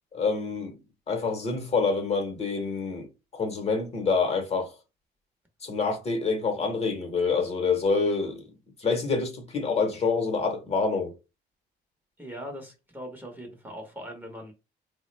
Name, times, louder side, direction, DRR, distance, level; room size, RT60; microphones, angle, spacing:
voice 1, 0.1-0.8 1.1-3.1 3.3-4.7 5.6-8.4 8.8-11.1, left 4 dB, 35° left, 0.9 m, -27 dB
voice 2, 12.2-14.5, equal, 10° right, 0.8 m, -40 dB
3.4 x 2.1 x 3.1 m
cardioid pair, 115°, 18 cm